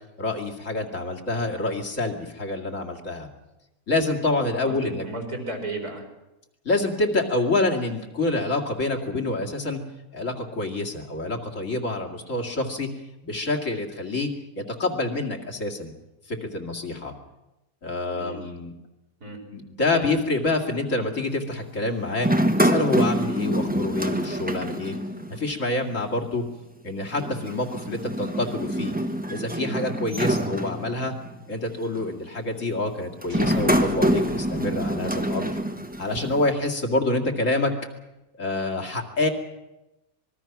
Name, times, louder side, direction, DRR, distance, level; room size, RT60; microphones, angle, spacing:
voice 1, 0.2-3.3 3.9-5.0 6.6-9.8 10.1-12.9 13.2-14.3 14.6-15.9 16.3-17.1 17.8-18.7 19.5-22.3 22.6-25.0 25.3-26.4 26.8-29.0 29.3-31.1 31.5-35.6 36.0-37.7 38.4-39.3, left 2 dB, 55° left, 1 dB, 2.7 m, -27 dB
voice 2, 4.6-6.0 18.1-18.5 19.2-19.4 19.9-20.1, right 2 dB, 80° right, 1 dB, 4.8 m, -34 dB
sound 1, 22.2-25.6 25.8-25.9 27.1-31.3 32.0-32.3 33.2-36.5, right 1 dB, 5° right, 1.0 m, -26 dB
sound 2, 33.3-37.0, right 3 dB, 65° right, 2.3 m, -41 dB
26.0 x 21.0 x 6.0 m, 0.97 s
omnidirectional pair, 1.6 m